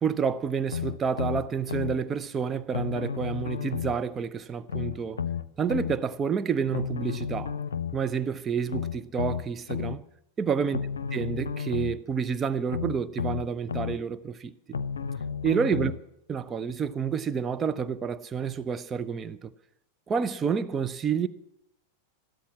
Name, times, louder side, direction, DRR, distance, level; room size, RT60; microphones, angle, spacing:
voice 1, 0.0-5.2 5.6-7.6 7.9-10.0 10.4-10.8 11.1-14.8 15.4-15.9 16.3-19.5 20.1-21.3, right 6 dB, 20° right, 0.7 m, -29 dB
sound 1, 0.7-2.0 2.7-4.0 4.7-6.0 6.7-8.0 8.7-10.0 10.7-12.0 12.7-14.0 14.7-16.0 16.7-16.8, left 7 dB, 70° left, 0.7 m, -32 dB
13.0 x 13.0 x 7.4 m
figure-of-eight pair, 90°, 0 cm